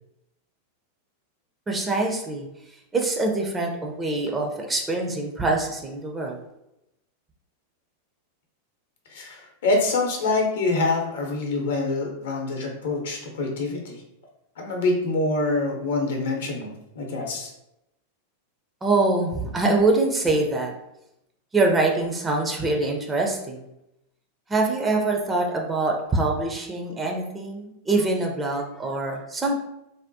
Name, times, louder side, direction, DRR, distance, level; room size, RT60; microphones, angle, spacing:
voice 1, 1.7-2.5 2.9-6.4 18.8-20.7 21.5-23.6 24.5-29.6, right 2 dB, 15° right, 0 dB, 0.5 m, -24 dB
voice 2, 9.1-14.0 14.6-17.5, left 3 dB, 60° left, 0 dB, 0.7 m, -25 dB
3.4 x 2.1 x 2.7 m, 0.85 s
figure-of-eight pair, 90°, 0 cm